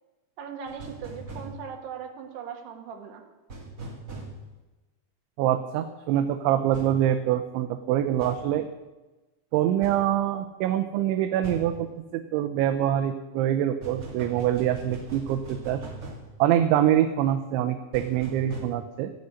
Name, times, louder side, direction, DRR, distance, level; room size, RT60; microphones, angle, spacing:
voice 1, 0.4-3.2, right 7 dB, 65° right, 4 dB, 3.5 m, -39 dB
sound 1, 0.7-1.5 3.5-4.3 6.7-7.0 8.2-8.4 9.8-10.0 11.4-11.7 13.8-16.2 17.9-18.6, right 2 dB, 30° right, 1.7 m, -39 dB
voice 2, 5.4-8.7 9.5-11.9 12.1-15.8 16.4-19.1, right 11 dB, 85° right, 7 dB, 3.1 m, -25 dB
15.5 x 6.5 x 9.7 m, 1.1 s
omnidirectional pair, 5.3 m